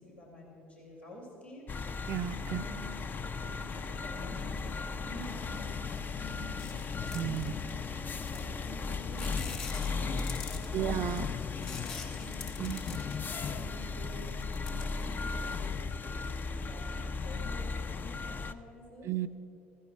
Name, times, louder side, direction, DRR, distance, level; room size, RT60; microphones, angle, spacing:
voice 1, 0.0-1.7 2.5-2.9 3.3-8.0 8.3-11.0 11.6-12.4 12.7-14.4 14.7-15.7 16.5-19.1, left 1 dB, 90° left, -8 dB, 4.2 m, -48 dB
sound 1, 1.7-18.5, left 4 dB, 30° left, 0.5 m, -36 dB
voice 2, 2.1-2.6 7.1-7.5 10.7-11.2 12.6-12.8 19.0-19.3, right 11 dB, 45° right, 11 dB, 0.6 m, -33 dB
sound 2, 6.6-7.8 8.3-8.8 9.1-13.9 14.3-15.5, left 5 dB, 70° left, 1.5 m, -45 dB
15.0 x 14.5 x 4.7 m, 2.6 s
figure-of-eight pair, 60°, 6 cm